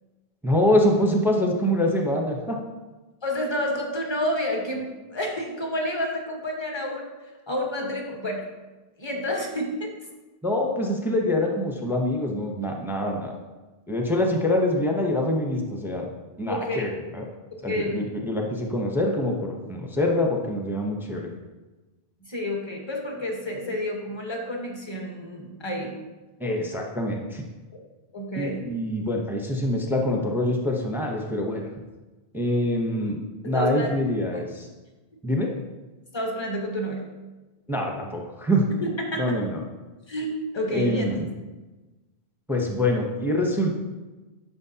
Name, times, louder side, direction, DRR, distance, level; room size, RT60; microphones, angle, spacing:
voice 1, 0.4-2.6 10.4-13.3 13.9-16.1 16.4-17.2 17.6-21.3 26.4-27.4 28.4-31.7 32.3-33.2 33.4-34.7 35.2-35.5 37.7-38.7 39.1-39.6 40.7-41.3 42.5-43.7, left 1 dB, ahead, 1 dB, 0.7 m, -25 dB
voice 2, 3.2-7.1 7.5-8.4 9.0-9.9 16.5-16.9 17.7-18.0 22.2-25.9 28.1-28.6 33.4-33.9 34.3-34.4 36.1-37.0 38.8-39.2 40.1-40.3 40.5-41.2, left 1 dB, 25° left, 0 dB, 1.2 m, -29 dB
9.5 x 6.3 x 2.8 m, 1.2 s
omnidirectional pair, 1.1 m